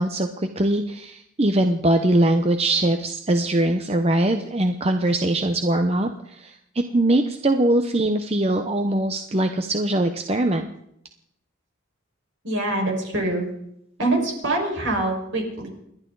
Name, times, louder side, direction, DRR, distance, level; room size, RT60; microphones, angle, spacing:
voice 1, 0.0-6.6 6.9-10.7, right 1 dB, 30° right, 6 dB, 0.8 m, -22 dB
voice 2, 12.4-13.5 14.0-15.7, right 2 dB, 65° right, 1 dB, 5.3 m, -24 dB
29.5 x 11.5 x 4.0 m, 0.74 s
head